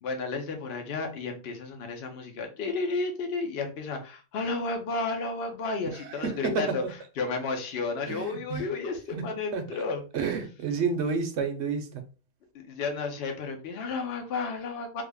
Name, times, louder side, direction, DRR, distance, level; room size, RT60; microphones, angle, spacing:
voice 1, 0.0-6.8 7.2-10.0 12.5-15.0, left 4 dB, 55° left, 0.9 m, -32 dB
voice 2, 5.9-6.9 8.1-8.6 9.5-9.6 10.1-12.0, right 5 dB, 60° right, 0.8 m, -30 dB
3.4 x 2.1 x 3.4 m
omnidirectional pair, 1.5 m